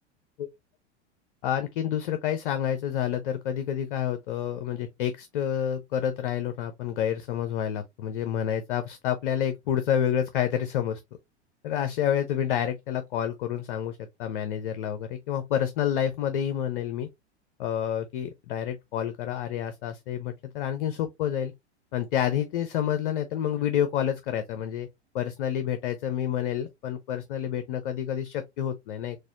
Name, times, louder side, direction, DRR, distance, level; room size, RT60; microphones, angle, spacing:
voice 1, 1.4-11.0 11.6-17.1 17.6-21.5 21.9-24.9 25.1-29.2, left 10 dB, 50° left, 0.6 m, -29 dB
4.1 x 2.5 x 2.7 m
figure-of-eight pair, 90°, 34 cm